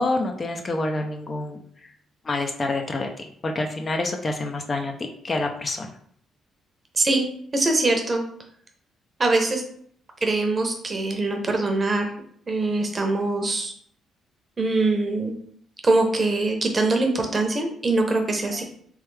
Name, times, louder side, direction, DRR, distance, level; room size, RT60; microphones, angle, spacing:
voice 1, 0.0-1.6 2.2-5.9, left 2 dB, 35° left, 4 dB, 0.5 m, -27 dB
voice 2, 6.9-7.3 7.5-8.2 9.2-9.6 10.2-12.1 12.5-13.7 14.6-15.3 15.8-18.6, right 2 dB, 30° right, 4 dB, 0.8 m, -23 dB
3.3 x 3.3 x 3.2 m, 0.63 s
cardioid pair, 90°, 0 cm